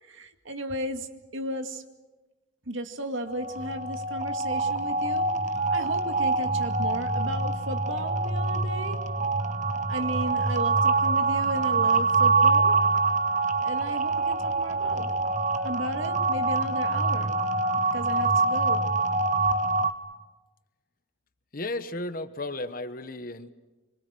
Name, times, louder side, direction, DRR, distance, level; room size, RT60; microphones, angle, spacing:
voice 1, 0.0-1.8 2.7-5.3 5.7-9.0 9.9-12.7 13.6-15.2 15.6-17.3 17.9-18.9, right 1 dB, 75° right, 6 dB, 2.2 m, -34 dB
sound 1, 3.3-19.9, right 3 dB, 35° right, 1.2 m, -25 dB
voice 2, 21.5-23.5, left 2 dB, 45° left, 11 dB, 1.2 m, -34 dB
26.0 x 25.5 x 7.7 m, 1.2 s
head